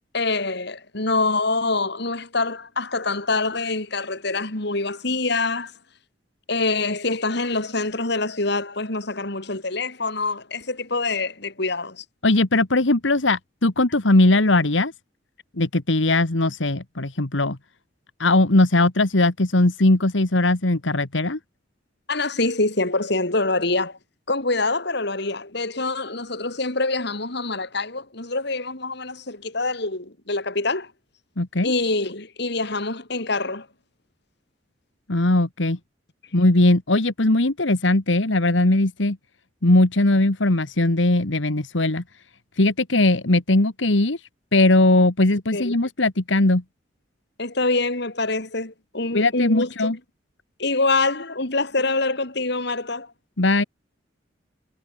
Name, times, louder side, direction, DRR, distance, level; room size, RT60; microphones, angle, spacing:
voice 1, 0.1-5.7 6.5-12.0 22.1-24.0 24.3-30.9 31.6-33.7 45.5-45.7 47.4-50.0 50.6-53.1, left 3 dB, 65° left, 3.9 m, -25 dB
voice 2, 12.2-14.9 15.6-17.6 18.2-21.4 31.4-31.7 35.1-35.8 36.3-39.2 39.6-42.0 42.6-44.2 44.5-46.6 49.1-50.0 53.4-53.6, left 2 dB, 90° left, 1.8 m, -19 dB
head